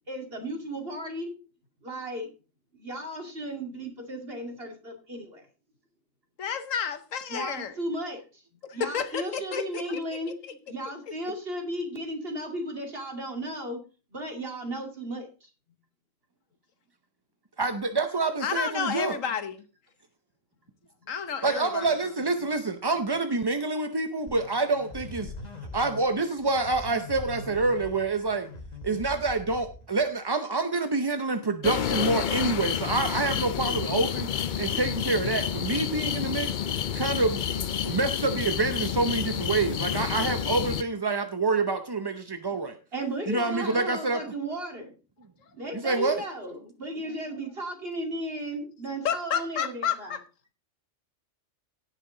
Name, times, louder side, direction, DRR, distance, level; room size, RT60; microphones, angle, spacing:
voice 1, 0.1-1.3 1.8-2.3 2.7-5.5 7.3-8.4 8.7-10.3 10.7-13.8 14.1-15.5 42.9-44.9 45.5-50.1, right 1 dB, 45° right, 2.7 m, -35 dB
voice 2, 6.4-7.7 8.7-10.0 10.4-10.6 18.4-19.6 21.1-21.9 49.0-50.2, left 7 dB, 75° left, 1.4 m, -31 dB
voice 3, 17.6-19.2 21.4-25.3 25.7-28.5 28.8-34.3 34.6-36.6 36.9-42.8 43.3-44.2 45.7-46.2, right 3 dB, 30° right, 0.5 m, -27 dB
sound 1, 24.3-30.1, left 3 dB, 35° left, 1.4 m, -42 dB
sound 2, 31.6-40.8, left 8 dB, 55° left, 0.5 m, -29 dB
17.0 x 5.9 x 3.8 m
omnidirectional pair, 1.4 m